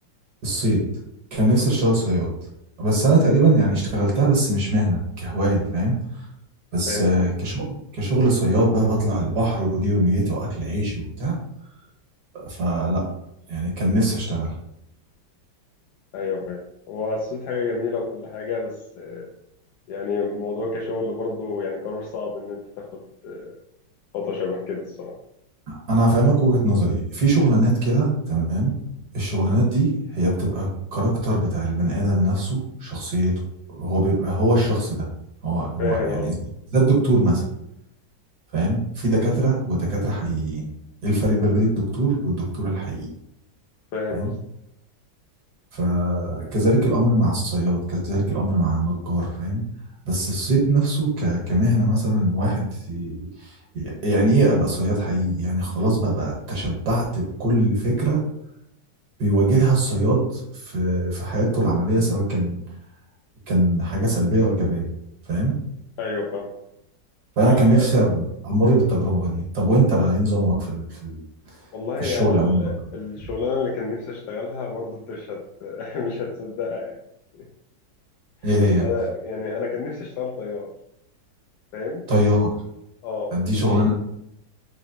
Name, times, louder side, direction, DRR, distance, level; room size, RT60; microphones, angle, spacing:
voice 1, 0.4-0.8 1.3-2.3 2.8-6.2 6.7-11.4 12.3-13.0 13.5-14.5 25.9-28.7 29.1-33.3 33.7-35.1 35.4-36.3 36.7-37.4 38.5-40.7 41.0-43.1 44.1-44.3 45.7-49.6 50.0-58.2 59.2-62.6 63.5-64.9 65.3-65.5 67.4-71.2 72.0-72.7 78.4-78.8 82.1-82.5 83.3-83.9, right 1 dB, 65° right, -3 dB, 1.7 m, -21 dB
voice 2, 6.9-7.3 16.1-16.6 16.9-19.3 19.9-23.5 24.1-25.2 35.8-36.3 43.9-44.4 66.0-66.5 67.4-67.9 71.7-77.0 77.4-77.5 78.4-80.7 81.7-82.0 83.0-83.9, left 4 dB, 75° left, -2 dB, 1.1 m, -29 dB
4.0 x 3.0 x 2.8 m, 0.80 s
omnidirectional pair, 1.9 m